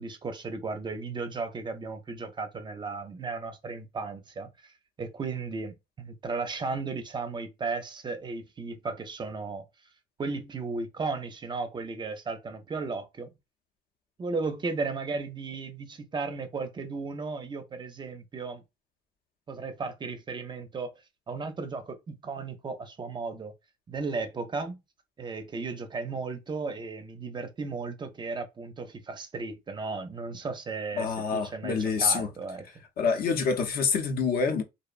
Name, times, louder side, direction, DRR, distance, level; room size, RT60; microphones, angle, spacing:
voice 1, 0.0-4.7 5.0-9.7 10.2-13.3 14.2-18.6 19.5-20.9 21.3-23.5 23.9-24.8 25.2-32.7, right 4 dB, 25° right, 0.4 m, -35 dB
voice 2, 31.0-32.3 33.0-34.6, left 5 dB, 65° left, 0.6 m, -26 dB
2.6 x 2.1 x 2.4 m
cardioid pair, 110°, 17 cm